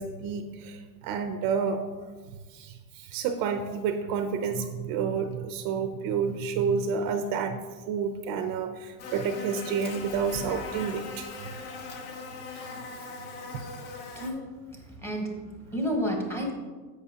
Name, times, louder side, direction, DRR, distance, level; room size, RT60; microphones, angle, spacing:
voice 1, 0.0-1.8 2.5-7.6 7.9-11.3 12.5-13.0 13.5-13.6, right 6 dB, 50° right, 7 dB, 0.7 m, -30 dB
Buzz, 9.0-14.3, left 4 dB, 55° left, 1.2 m, -40 dB
voice 2, 14.1-14.6 15.0-15.4 15.7-16.5, equal, 5° left, 0 dB, 1.2 m, -30 dB
10.5 x 8.0 x 2.9 m, 1.4 s
cardioid pair, 155°, 44 cm